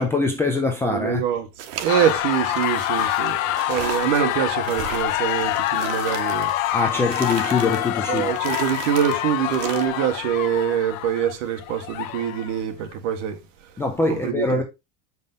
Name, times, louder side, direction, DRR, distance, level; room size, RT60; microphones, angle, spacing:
voice 1, 0.0-1.2 6.7-8.3 13.8-14.6, left 3 dB, 5° left, 0.4 m, -23 dB
voice 2, 0.8-1.5 1.8-6.5 8.1-13.4 14.1-14.6, right 9 dB, 65° right, 1.6 m, -24 dB
sound 1, 1.6-9.9, right 10 dB, 85° right, 1.3 m, -37 dB
sound 2, 1.9-12.6, left 14 dB, 85° left, 0.9 m, -26 dB
6.6 x 5.3 x 3.9 m
cardioid pair, 175°, 39 cm